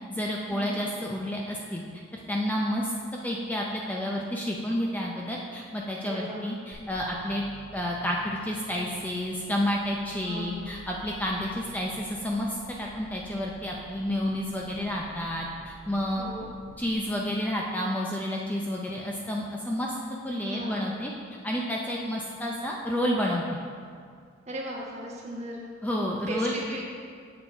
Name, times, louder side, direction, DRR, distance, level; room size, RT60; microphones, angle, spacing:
voice 1, 0.1-1.8 2.1-2.9 3.2-7.4 7.7-16.3 16.8-19.9 20.2-21.1 21.4-23.6 25.8-26.5, equal, 10° left, -2 dB, 0.5 m, -30 dB
voice 2, 6.0-6.5 10.2-10.7 16.1-16.5 20.4-20.9 24.5-25.7 26.3-26.8, equal, 35° right, -3 dB, 1.3 m, -36 dB
sound 1, 6.7-17.0, right 1 dB, 80° left, 1.5 m, -50 dB
7.3 x 6.8 x 4.3 m, 2.1 s
head